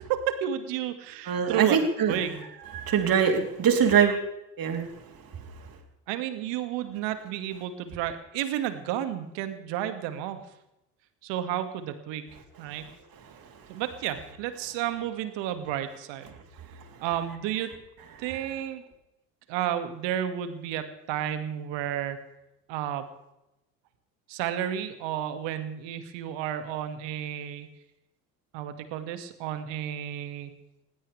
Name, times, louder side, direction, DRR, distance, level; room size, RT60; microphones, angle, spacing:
voice 1, 0.0-1.8 2.1-2.5 6.1-10.4 11.2-12.9 13.7-16.4 17.0-17.7 18.2-18.8 19.5-22.2 22.7-23.1 24.3-27.7 28.5-30.5, right 11 dB, 65° right, 9 dB, 2.2 m, -32 dB
voice 2, 1.3-2.2 2.7-4.2 4.6-4.9, right 7 dB, 45° right, 3 dB, 3.6 m, -23 dB
22.0 x 17.0 x 3.5 m, 0.88 s
hypercardioid pair, 65°, 48 cm